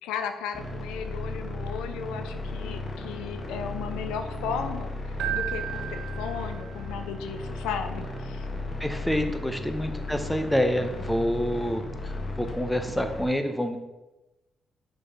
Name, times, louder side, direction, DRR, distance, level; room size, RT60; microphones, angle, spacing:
voice 1, 0.0-8.5, left 7 dB, 90° left, 7 dB, 0.6 m, -35 dB
sound 1, 0.5-13.3, left 2 dB, 55° left, 1.4 m, -35 dB
Keyboard (musical), 5.2-7.0, right 12 dB, 80° right, 0.9 m, -34 dB
voice 2, 8.8-13.8, equal, 5° left, 6 dB, 1.0 m, -27 dB
5.9 x 4.8 x 4.8 m, 1.0 s
supercardioid pair, 60°, 0 cm